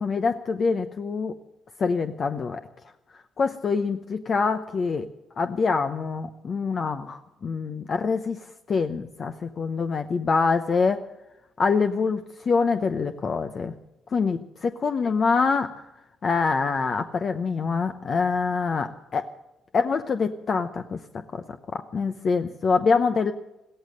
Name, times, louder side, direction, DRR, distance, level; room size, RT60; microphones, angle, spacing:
voice 1, 0.0-1.3 1.8-2.6 3.4-5.1 5.4-11.0 11.6-13.7 14.1-15.8 16.2-19.3 19.7-21.4 21.7-23.3, left 4 dB, 45° left, 8 dB, 0.8 m, -25 dB
15.5 x 13.5 x 6.6 m, 0.95 s
cardioid pair, 90°, 0 cm